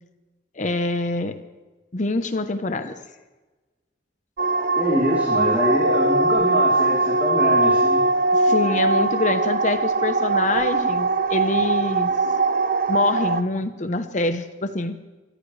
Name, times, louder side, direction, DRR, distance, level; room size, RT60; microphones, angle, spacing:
voice 1, 0.6-1.3 1.9-2.9 8.3-12.1 12.9-15.0, left 2 dB, 40° left, 9 dB, 0.9 m, -25 dB
sound 1, 4.4-13.4, right 2 dB, 45° right, 0.7 m, -21 dB
voice 2, 4.8-8.0, equal, 10° right, -5 dB, 3.4 m, -25 dB
27.5 x 15.0 x 3.3 m, 1.2 s
head